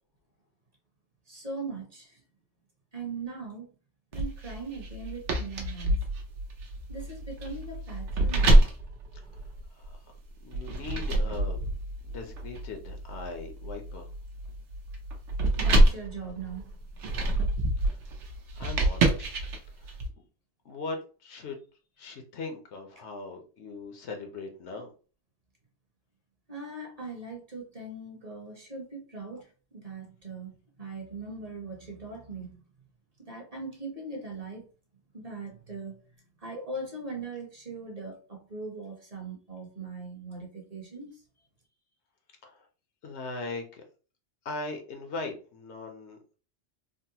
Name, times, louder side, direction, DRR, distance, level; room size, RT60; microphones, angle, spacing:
voice 1, 1.3-2.2 2.9-3.7 4.1-5.9 6.9-8.5 15.6-16.7 26.5-32.6 33.2-34.7 35.1-36.0 36.4-41.2, right 3 dB, 35° right, 0.8 m, -40 dB
sound 1, 4.1-9.9 10.5-20.1, right 1 dB, 80° right, 1.0 m, -26 dB
voice 2, 9.3-10.1 10.4-11.7 12.1-14.1 17.8-18.0 18.5-19.4 19.8-20.0 20.6-21.6 22.0-24.9 42.4-42.7 43.0-43.8 44.4-46.2, left 3 dB, 75° left, 1.0 m, -40 dB
3.8 x 2.0 x 2.7 m
omnidirectional pair, 1.2 m